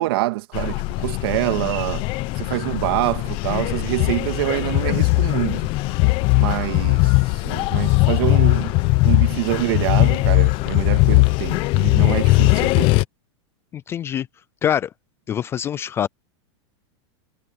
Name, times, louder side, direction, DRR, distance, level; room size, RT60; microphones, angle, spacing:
voice 1, 0.0-2.1 2.4-5.6 6.3-7.2 7.4-8.8 9.0-12.9, right 18 dB, 60° right, 2.2 m, -25 dB
sound 1, 0.5-13.0, left 22 dB, 35° left, 0.9 m, -19 dB
voice 2, 13.7-14.3 14.6-14.9 15.3-16.1, left 9 dB, 15° left, 0.3 m, -24 dB
supercardioid pair, 155°, 15 cm